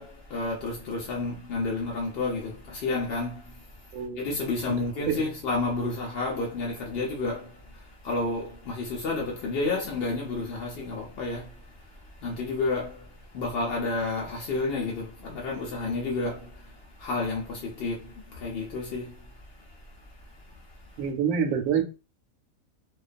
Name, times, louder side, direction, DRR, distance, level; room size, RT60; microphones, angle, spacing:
voice 1, 0.0-21.0, left 3 dB, 65° left, 0.6 m, -31 dB
voice 2, 3.9-4.2 5.2-5.3 21.0-21.8, right 7 dB, 75° right, 0.9 m, -26 dB
2.3 x 2.2 x 2.4 m
omnidirectional pair, 1.4 m